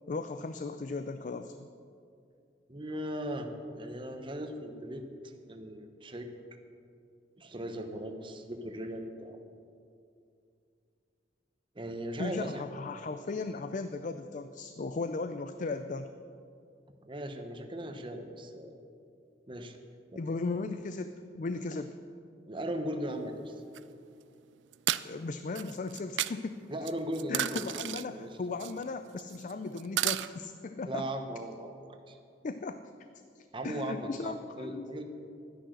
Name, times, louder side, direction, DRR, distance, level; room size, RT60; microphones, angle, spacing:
voice 1, 0.1-1.7 12.2-16.1 20.2-22.0 25.0-26.6 27.3-31.1 32.4-32.8 33.3-34.9, left 3 dB, 45° left, 10 dB, 0.4 m, -37 dB
voice 2, 2.7-5.0 5.5-6.3 7.4-9.4 11.7-12.6 17.0-18.8 19.5-19.8 20.1-20.2 22.5-23.6 26.7-27.9 28.1-28.4 30.9-31.8 32.1-32.2 33.5-35.0, right 1 dB, 30° right, 5 dB, 1.0 m, -38 dB
sound 1, 23.7-23.8 24.7-25.0 25.6-26.3 26.9-28.0 28.6-28.8 29.2-29.5 29.8-30.3, right 13 dB, 85° right, 0.4 m, -32 dB
12.5 x 10.0 x 6.5 m, 2.4 s
head